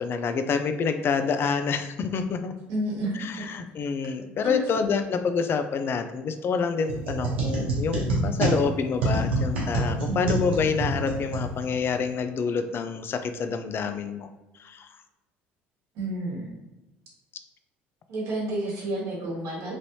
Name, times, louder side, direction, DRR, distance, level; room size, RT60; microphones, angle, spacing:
voice 1, 0.0-2.5 3.1-14.3 14.6-14.9, left 5 dB, 45° left, 8 dB, 0.3 m, -27 dB
voice 2, 2.7-3.4 4.4-4.6 10.0-10.4 15.9-16.5 18.1-19.8, right 1 dB, 65° right, -4 dB, 1.3 m, -30 dB
sound 1, 6.9-12.0, right 1 dB, 90° right, 0.9 m, -27 dB
3.1 x 2.6 x 2.7 m, 1.0 s
hypercardioid pair, 70°, 6 cm